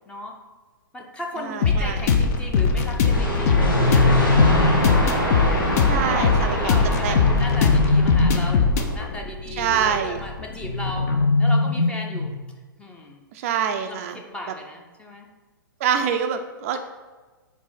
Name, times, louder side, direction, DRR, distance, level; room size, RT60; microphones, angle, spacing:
voice 1, 0.1-0.4 0.9-4.7 5.9-11.1 11.4-12.3 12.7-13.2 13.8-15.3, left 1 dB, 10° left, 1 dB, 0.7 m, -36 dB
voice 2, 1.4-2.1 5.8-6.7 7.0-7.5 9.6-10.2 13.3-14.2 15.8-16.8, right 8 dB, 40° right, 7 dB, 0.4 m, -25 dB
sound 1, 1.6-11.3, left 5 dB, 45° left, 0.7 m, -22 dB
sound 2, 3.0-8.7, equal, 65° left, 1.7 m, -25 dB
sound 3, 3.3-5.1 6.9-8.8 10.6-12.5, left 2 dB, 85° left, 0.5 m, -22 dB
4.7 x 4.1 x 5.6 m, 1.3 s
figure-of-eight pair, 115°, 12 cm